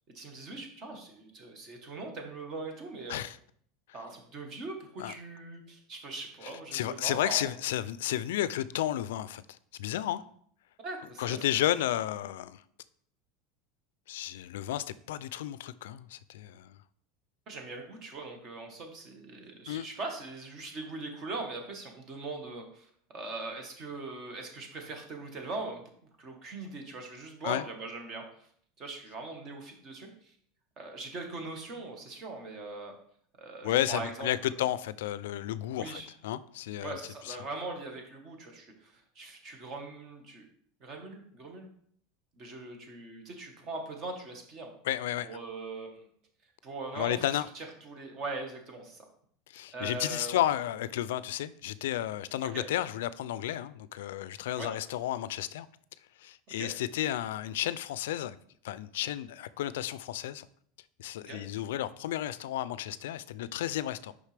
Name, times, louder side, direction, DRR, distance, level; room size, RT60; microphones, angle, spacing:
voice 1, 0.1-3.2 3.9-7.5 10.8-11.8 17.5-22.9 23.1-25.8 26.2-28.2 28.8-30.3 30.8-32.9 33.4-34.7 35.8-36.1 36.8-40.5 40.8-41.7 42.4-44.7 45.2-46.1 46.6-49.0 49.7-50.4 52.4-52.7 54.6-54.7 56.5-56.7 61.3-61.4, right 3 dB, 35° right, 1.4 m, -41 dB
voice 2, 6.7-9.4 9.8-10.2 11.2-12.6 14.1-16.8 19.7-19.9 27.4-27.6 33.6-37.0 37.3-37.4 44.8-45.4 46.9-47.5 49.5-55.7 56.2-58.4 58.6-60.5 61.0-64.1, left 12 dB, 90° left, 0.3 m, -32 dB
6.5 x 5.3 x 3.3 m
supercardioid pair, 155°, 0 cm